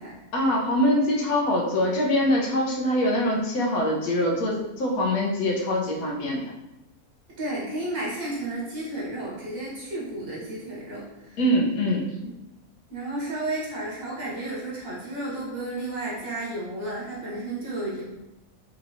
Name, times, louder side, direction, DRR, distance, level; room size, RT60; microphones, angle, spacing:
voice 1, 0.3-6.4 11.4-12.0, left 1 dB, 90° left, -1 dB, 1.3 m, -23 dB
voice 2, 7.4-11.4 12.2-12.3 12.9-18.0, right 2 dB, 75° right, -6 dB, 1.7 m, -32 dB
4.5 x 2.8 x 2.7 m, 0.93 s
omnidirectional pair, 1.5 m